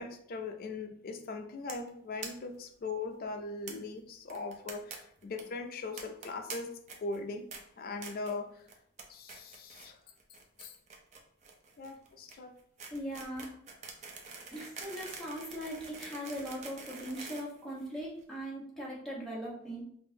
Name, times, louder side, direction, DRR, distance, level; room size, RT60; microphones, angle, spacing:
voice 1, 0.0-6.7 7.0-7.5 7.8-8.7 9.1-10.0 10.6-10.8 11.8-12.5, left 3 dB, 45° left, 6 dB, 0.4 m, -40 dB
sound 1, 1.7-1.9 2.2-2.3 2.6-2.7 2.9-3.0 3.7-3.8 4.3-5.0 5.2-5.4 6.0-6.6 6.9-7.2 7.5-7.6 8.0-8.3 8.7-9.0 9.3-9.9 10.2-18.2, right 4 dB, 35° right, 0.6 m, -46 dB
voice 2, 12.9-13.5 14.5-19.8, equal, ahead, -6 dB, 1.1 m, -40 dB
5.3 x 2.5 x 2.7 m, 0.67 s
head